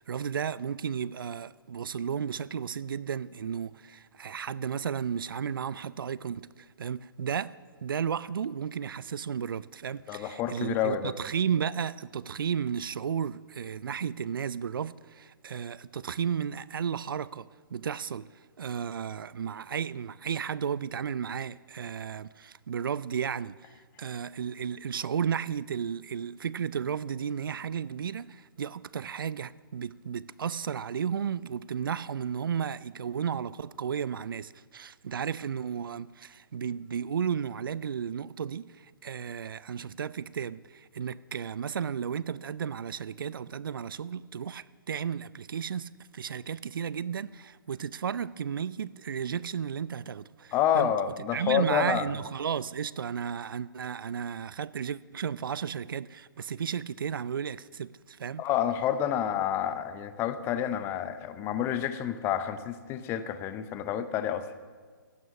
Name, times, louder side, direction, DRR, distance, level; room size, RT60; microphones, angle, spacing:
voice 1, 0.0-7.5 7.8-23.7 24.0-50.9 51.3-58.4, right 7 dB, 75° right, 0.4 m, -33 dB
voice 2, 10.1-11.1 50.5-52.1 58.4-64.5, left 9 dB, 20° left, 0.7 m, -29 dB
15.5 x 9.3 x 5.9 m
hypercardioid pair, 140°, 12 cm